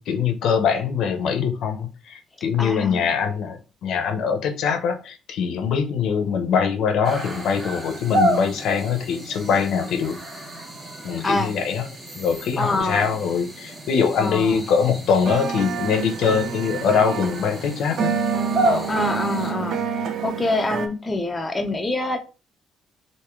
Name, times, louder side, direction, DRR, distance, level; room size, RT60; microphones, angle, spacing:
voice 1, 0.0-10.2 11.0-11.8 12.2-18.1 18.6-18.9, left 6 dB, 75° left, 0.6 m, -23 dB
voice 2, 2.6-3.1 11.2-11.5 12.6-13.2 14.2-14.6 18.9-19.8 20.2-22.2, left 2 dB, 15° left, 0.6 m, -25 dB
sound 1, 7.0-19.5, right 1 dB, 30° right, 1.3 m, -31 dB
sound 2, 15.3-20.9, right 6 dB, 65° right, 0.4 m, -28 dB
3.0 x 2.7 x 3.5 m
cardioid pair, 120°, 0 cm